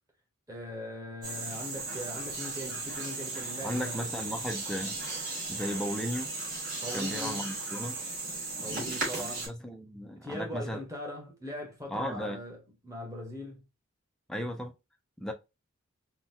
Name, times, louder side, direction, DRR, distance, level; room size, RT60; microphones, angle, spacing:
voice 1, 0.5-4.3 6.8-7.5 8.6-9.5 10.2-13.6, equal, 15° right, 0.9 m, -40 dB
sound 1, 1.2-9.5, right 3 dB, 35° right, 1.9 m, -36 dB
voice 2, 3.6-5.0 5.5-6.3 6.9-8.0 9.2-10.8 11.9-12.4 14.3-14.7 15.2-15.3, equal, 5° left, 0.4 m, -35 dB
3.8 x 2.1 x 2.6 m
head